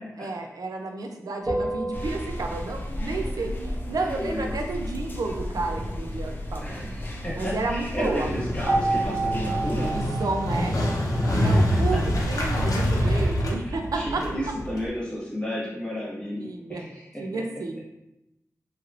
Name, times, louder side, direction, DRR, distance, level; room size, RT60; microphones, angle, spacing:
voice 1, 0.2-6.9 7.4-8.3 9.9-10.7 11.4-14.2 16.4-16.9 17.2-17.8, right 3 dB, 90° right, 3 dB, 0.4 m, -31 dB
sound 1, 1.5-3.0 8.7-12.0, right 2 dB, 20° right, 1.0 m, -30 dB
sound 2, 1.9-10.1, left 1 dB, 30° left, 0.5 m, -34 dB
voice 2, 3.9-4.6 6.6-9.9 11.2-12.0 13.0-13.3 13.6-17.4, equal, 15° left, -6 dB, 1.1 m, -33 dB
Motorcycle, 8.1-14.9, equal, 80° left, 0.6 m, -25 dB
3.1 x 3.0 x 2.4 m, 0.88 s
wide cardioid pair, 100°, 6 cm